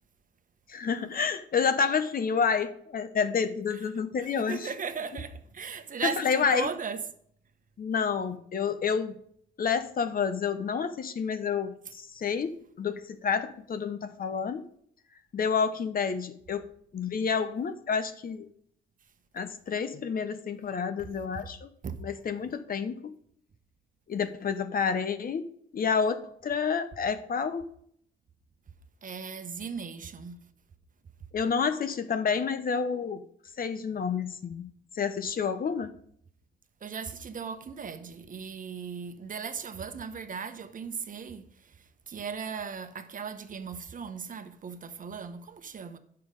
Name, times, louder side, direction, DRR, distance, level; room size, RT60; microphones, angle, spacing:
voice 1, 0.7-4.7 6.0-6.7 7.8-9.2 9.6-14.6 15.3-16.7 16.9-18.5 19.3-21.7 22.0-23.1 24.1-25.5 25.7-27.6 31.3-33.2 33.6-35.9, left 6 dB, 45° left, 0.9 m, -29 dB
voice 2, 4.2-7.0 21.8-22.0 29.0-30.4 36.8-46.0, right 6 dB, 45° right, 1.0 m, -38 dB
9.5 x 6.8 x 5.2 m
cardioid pair, 90°, 20 cm